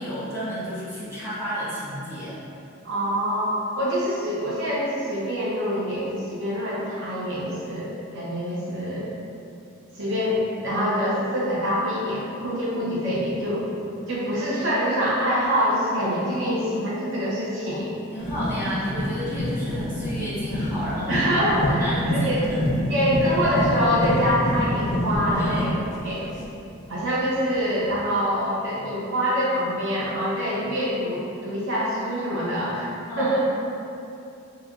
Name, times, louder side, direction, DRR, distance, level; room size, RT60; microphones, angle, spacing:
voice 1, 0.0-2.4 18.1-22.6 23.2-23.5 25.3-25.7 32.5-32.6 33.1-33.3, equal, 10° right, -13 dB, 1.1 m, -32 dB
voice 2, 2.8-9.1 9.9-13.6 14.1-17.9 21.1-22.5 22.9-25.7 26.0-26.3 26.9-32.9 33.2-33.4, equal, 60° right, -6 dB, 0.7 m, -25 dB
sound 1, 18.2-27.0 27.9-28.0, equal, 35° left, 0.4 m, -27 dB
3.2 x 2.3 x 2.4 m, 2.6 s
head